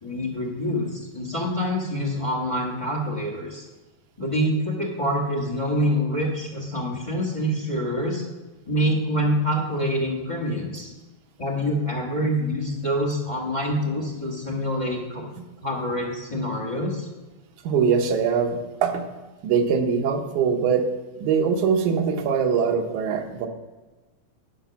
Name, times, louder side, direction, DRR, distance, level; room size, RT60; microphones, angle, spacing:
voice 1, 0.0-3.6 4.2-8.2 8.7-10.9 11.4-15.3 15.6-17.1, equal, 45° left, -1 dB, 0.4 m, -26 dB
voice 2, 17.6-19.1 19.4-20.8 21.2-23.5, right 6 dB, 85° right, 4 dB, 2.4 m, -22 dB
10.5 x 5.1 x 5.8 m, 1.2 s
omnidirectional pair, 3.3 m